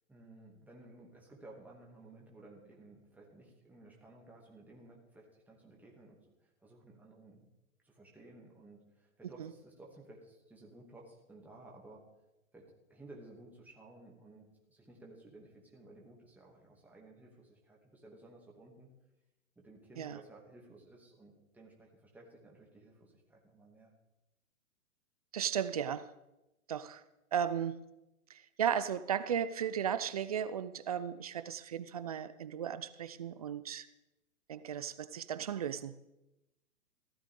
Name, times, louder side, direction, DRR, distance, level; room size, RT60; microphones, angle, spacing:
voice 1, 0.1-7.5 7.8-12.0 12.5-18.9 19.6-23.9, right 2 dB, 5° right, -2 dB, 2.4 m, -56 dB
voice 2, 25.3-26.1 26.7-27.0 27.3-27.8 28.3-33.9 34.5-36.0, right 8 dB, 30° right, 13 dB, 0.4 m, -35 dB
15.5 x 13.0 x 3.7 m, 0.94 s
hypercardioid pair, 130°, 42 cm